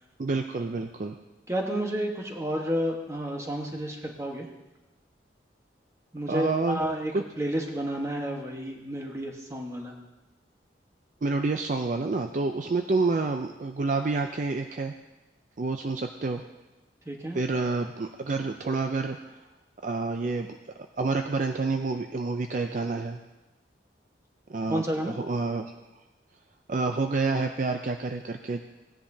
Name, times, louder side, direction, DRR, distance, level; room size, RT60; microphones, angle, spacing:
voice 1, 0.2-1.2 6.3-6.8 7.1-7.2 11.2-14.9 15.6-16.4 17.3-19.4 19.8-20.6 21.0-23.2 24.5-25.8 26.7-28.6, right 3 dB, 45° right, 5 dB, 0.4 m, -28 dB
voice 2, 1.5-4.5 6.1-7.1 7.4-9.9 17.1-17.4 24.7-25.1, equal, 15° right, 1 dB, 1.2 m, -31 dB
17.5 x 10.0 x 2.7 m, 1.1 s
head